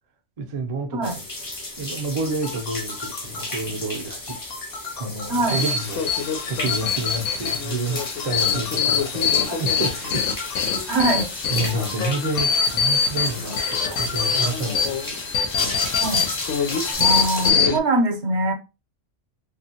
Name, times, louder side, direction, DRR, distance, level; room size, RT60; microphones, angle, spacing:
voice 1, 0.4-1.2 1.8-4.4 5.0-6.0 6.5-10.3 11.5-15.0 15.5-16.3, right 2 dB, 45° right, 0.5 m, -29 dB
sound 1, 1.0-17.5, left 2 dB, 25° left, 0.4 m, -34 dB
sound 2, 2.2-16.9, left 4 dB, 60° left, 0.7 m, -38 dB
voice 2, 5.3-5.6 10.9-11.3 16.0-16.3 17.0-18.5, right 2 dB, 65° right, 0.9 m, -22 dB
sound 3, 5.5-17.8, left 6 dB, 90° left, 0.9 m, -24 dB
2.7 x 2.4 x 2.7 m
omnidirectional pair, 1.3 m